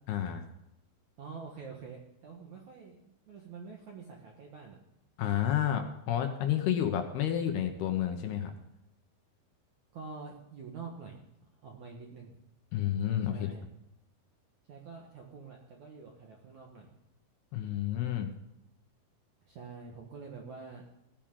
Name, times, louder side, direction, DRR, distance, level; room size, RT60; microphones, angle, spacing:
voice 1, 0.1-0.4 5.2-8.5 12.7-13.5 17.5-18.3, left 10 dB, 70° left, 5 dB, 2.7 m, -30 dB
voice 2, 1.2-4.8 9.9-11.3 11.6-12.3 13.3-13.7 14.7-16.9 19.5-20.8, right 5 dB, 60° right, 0 dB, 2.0 m, -46 dB
16.0 x 9.2 x 3.8 m, 0.87 s
omnidirectional pair, 5.2 m